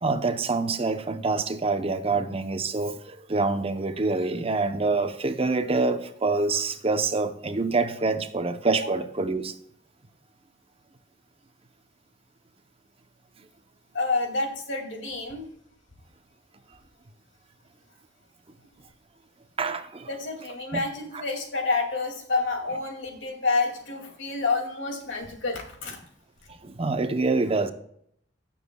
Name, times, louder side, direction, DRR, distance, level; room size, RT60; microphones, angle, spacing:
voice 1, 0.0-9.5 19.6-20.1 20.7-20.8 21.1-21.2 26.6-27.7, right 3 dB, 30° right, 0.7 m, -26 dB
voice 2, 13.9-15.5 20.1-26.0, left 3 dB, 90° left, 2.5 m, -28 dB
16.5 x 7.3 x 2.3 m
head